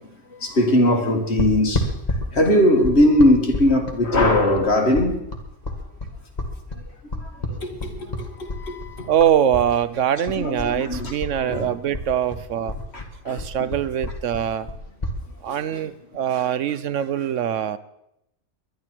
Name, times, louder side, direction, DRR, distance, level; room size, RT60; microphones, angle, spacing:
voice 1, 0.4-1.9 2.3-5.2 7.0-9.1 10.4-11.1 11.4-11.7 12.9-13.7 15.5-15.6, left 1 dB, 55° left, 2.3 m, -20 dB
sound 1, 1.4-9.7 9.9-11.6 11.9-15.2, left 1 dB, 35° left, 2.0 m, -29 dB
voice 2, 9.1-12.7 13.2-14.7 15.4-17.8, right 9 dB, 75° right, 1.0 m, -23 dB
21.0 x 11.5 x 4.5 m
omnidirectional pair, 1.3 m